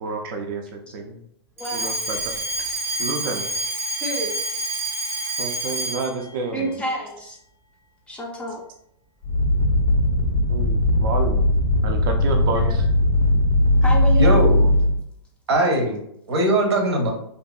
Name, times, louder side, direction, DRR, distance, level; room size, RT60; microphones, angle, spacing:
voice 1, 0.0-1.2 1.7-2.3 3.0-3.5 4.0-4.1 5.4-6.7 10.5-11.4 11.8-12.9, right 3 dB, 55° right, 3 dB, 0.4 m, -29 dB
voice 2, 1.6-1.9 4.0-4.4 6.5-7.4 8.1-8.6 13.8-14.5, right 1 dB, 10° left, -1 dB, 0.4 m, -29 dB
Alarm, 1.6-6.2, right 1 dB, 15° right, 0.8 m, -28 dB
sound 1, 9.2-15.0, left 1 dB, 70° left, 0.5 m, -19 dB
voice 3, 14.2-14.7 15.5-16.0 16.3-17.1, right 1 dB, 90° right, 2 dB, 0.8 m, -20 dB
2.7 x 2.5 x 2.3 m, 0.73 s
hypercardioid pair, 140°, 13 cm